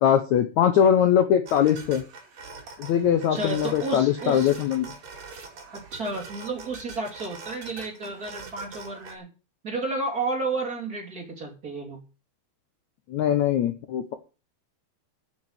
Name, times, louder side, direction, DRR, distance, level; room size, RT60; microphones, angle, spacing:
voice 1, 0.0-2.0 2.8-4.9 13.1-14.1, left 9 dB, 80° left, 9 dB, 1.6 m, -21 dB
sound 1, 1.5-9.2, right 4 dB, 45° right, 3.3 m, -43 dB
voice 2, 3.1-4.5 5.7-9.3 9.6-12.0, right 3 dB, 25° right, 0 dB, 2.5 m, -32 dB
8.9 x 8.1 x 7.9 m, 0.33 s
omnidirectional pair, 4.7 m